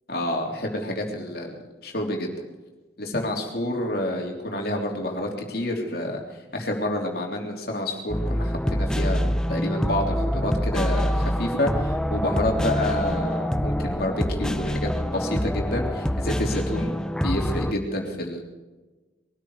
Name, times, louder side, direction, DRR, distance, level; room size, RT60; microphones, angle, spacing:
voice 1, 0.1-2.4 3.0-6.2 6.5-9.2 9.5-18.4, left 1 dB, 55° left, 1 dB, 3.4 m, -28 dB
sound 1, 8.1-17.7, equal, 5° left, 0.6 m, -25 dB
22.5 x 13.0 x 4.9 m, 1.2 s
head